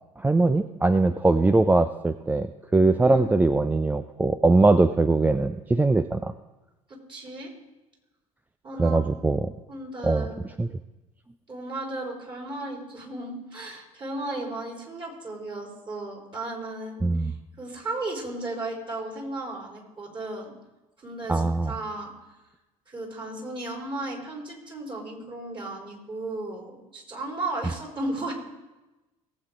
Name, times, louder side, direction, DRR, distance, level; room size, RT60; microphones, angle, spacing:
voice 1, 0.2-6.3 8.8-9.5 10.0-10.3 10.6-10.7 17.0-17.3 21.3-21.7, right 3 dB, 10° right, 11 dB, 0.4 m, -21 dB
voice 2, 3.0-3.4 6.9-7.5 8.6-9.0 9.7-10.4 11.5-20.5 21.0-22.1 22.9-28.3, right 2 dB, 25° right, -1 dB, 4.2 m, -35 dB
19.0 x 8.1 x 3.8 m, 1.0 s
figure-of-eight pair, 60°, 18 cm